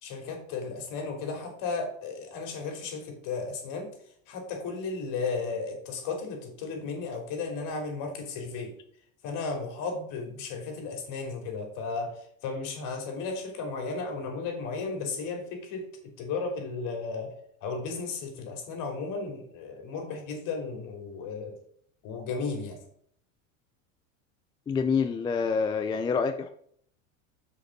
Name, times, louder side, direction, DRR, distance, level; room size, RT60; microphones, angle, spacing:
voice 1, 0.0-3.9 4.3-8.7 9.2-15.9 16.2-17.3 17.6-21.6 22.0-22.8, left 4 dB, 55° left, 2 dB, 3.3 m, -34 dB
voice 2, 24.7-26.5, left 5 dB, 10° left, 8 dB, 0.3 m, -27 dB
6.4 x 5.4 x 5.9 m, 0.64 s
supercardioid pair, 120°, 39 cm